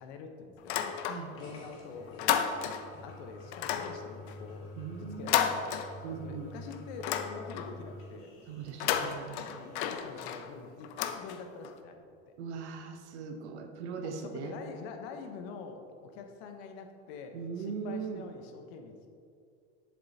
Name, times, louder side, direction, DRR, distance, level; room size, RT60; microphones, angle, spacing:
voice 1, 0.0-1.0 1.3-2.6 3.0-4.7 5.0-5.7 6.1-8.3 9.5-12.3 14.0-19.1, left 5 dB, 65° left, 5 dB, 1.0 m, -45 dB
Door Lock Unlock, 0.6-1.5 1.8-3.0 3.5-6.4 6.7-7.8 8.6-11.8, left 9 dB, 85° left, 0.6 m, -33 dB
sound 1, 1.4-10.1, left 1 dB, 40° left, 1.6 m, -49 dB
voice 2, 4.8-5.5 6.0-6.5 8.5-9.6 12.4-14.6 17.3-18.3, right 6 dB, 85° right, 6 dB, 0.9 m, -40 dB
7.5 x 7.1 x 2.8 m, 2.3 s
supercardioid pair, 135°, 33 cm